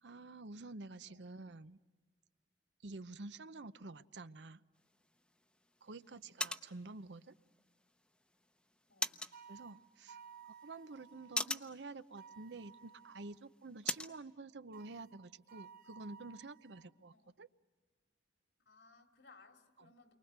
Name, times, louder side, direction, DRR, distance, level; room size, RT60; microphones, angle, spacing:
voice 1, 0.0-1.8 2.8-4.6 5.8-7.3 9.5-10.2 10.6-17.5 19.8-19.9, right 3 dB, 85° right, 13 dB, 0.8 m, -49 dB
sound 1, 4.7-14.2, left 2 dB, 5° left, 0.8 m, -45 dB
voice 2, 5.9-6.2 8.9-9.2 17.1-17.3 18.6-20.1, left 3 dB, 85° left, 4 dB, 3.4 m, -64 dB
sound 2, 9.3-11.4 12.2-13.4 14.7-16.9, right 7 dB, 55° right, 1.2 m, -57 dB
29.5 x 23.5 x 8.1 m, 1.3 s
head